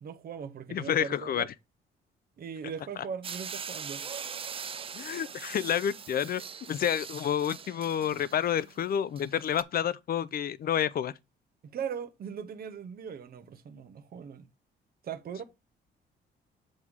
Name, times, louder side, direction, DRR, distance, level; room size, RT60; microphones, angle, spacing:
voice 1, 0.0-1.5 2.4-4.3 11.6-14.5 15.0-15.4, right 7 dB, 50° right, 0.8 m, -39 dB
voice 2, 0.7-1.5 3.0-3.1 4.9-6.4 6.7-11.1, left 9 dB, 50° left, 0.5 m, -29 dB
sound 1, 3.2-9.6, right 6 dB, 30° right, 0.4 m, -42 dB
7.6 x 3.6 x 4.7 m
cardioid pair, 90°, 20 cm